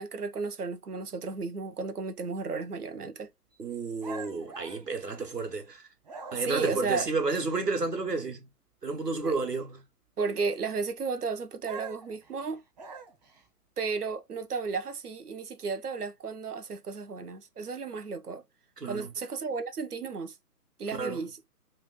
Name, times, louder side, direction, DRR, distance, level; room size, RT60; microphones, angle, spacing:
voice 1, 0.0-3.3 6.3-7.1 9.2-9.4 10.2-12.6 13.8-18.4 18.8-20.4 20.8-21.4, right 4 dB, 70° right, 0.9 m, -33 dB
voice 2, 3.6-5.8 6.3-8.4 8.8-9.8 18.8-19.1 20.9-21.2, right 3 dB, 85° right, 1.3 m, -31 dB
sound 1, 4.0-5.6 6.0-6.7 11.6-13.4, right 4 dB, 25° right, 0.7 m, -44 dB
3.4 x 2.4 x 3.4 m
figure-of-eight pair, 135°, 47 cm